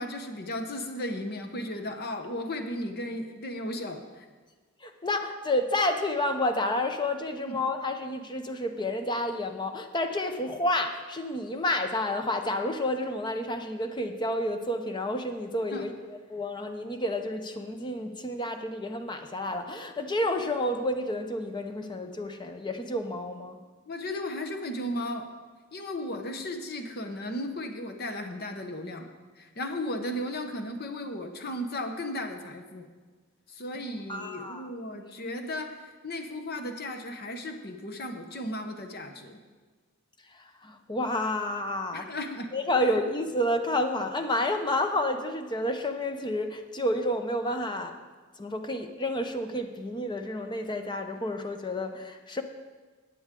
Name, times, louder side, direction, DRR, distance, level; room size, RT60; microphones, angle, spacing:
voice 1, 0.0-4.3 7.5-7.6 15.7-15.9 23.9-25.3 25.7-29.1 29.4-32.9 33.5-39.4 41.9-42.8, left 1 dB, 50° left, 6 dB, 1.0 m, -35 dB
voice 2, 4.8-15.9 16.3-23.6 34.1-34.7 40.6-42.0 42.5-47.9 48.4-52.4, left 1 dB, 20° left, 6 dB, 0.7 m, -30 dB
14.5 x 9.5 x 3.8 m, 1.4 s
head